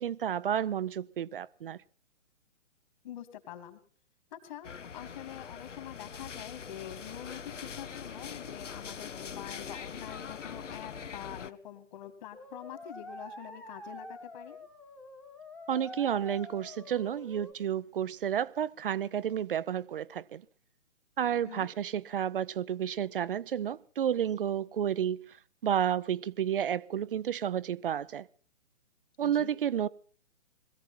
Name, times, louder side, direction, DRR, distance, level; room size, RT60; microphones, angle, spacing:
voice 1, 0.0-1.8 15.7-20.4 21.2-25.4 25.6-28.3 29.2-29.9, right 9 dB, 50° right, 0.7 m, -31 dB
voice 2, 3.0-3.8 4.3-14.6 21.4-21.7 29.2-29.5, left 11 dB, 40° left, 2.8 m, -45 dB
sound 1, 4.6-11.5, left 6 dB, 80° left, 0.9 m, -43 dB
sound 2, 12.3-17.5, left 1 dB, 5° left, 1.3 m, -46 dB
21.5 x 14.5 x 4.3 m
figure-of-eight pair, 135°, 36 cm